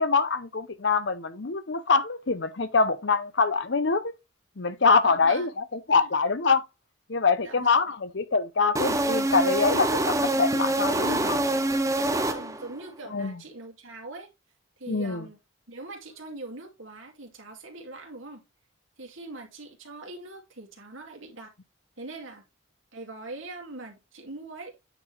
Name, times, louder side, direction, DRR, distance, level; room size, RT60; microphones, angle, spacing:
voice 1, 0.0-4.1 4.6-6.6 7.1-11.4 13.1-13.4 14.9-15.3, left 4 dB, 55° left, 0.7 m, -24 dB
voice 2, 5.0-5.5 6.0-6.1 7.4-7.8 12.2-14.3 14.8-15.4 15.7-18.4 19.0-21.5 22.0-22.4 22.9-24.8, right 2 dB, 70° right, 2.2 m, -42 dB
sound 1, 8.8-12.8, right 1 dB, 15° right, 0.7 m, -25 dB
8.9 x 4.3 x 3.2 m
head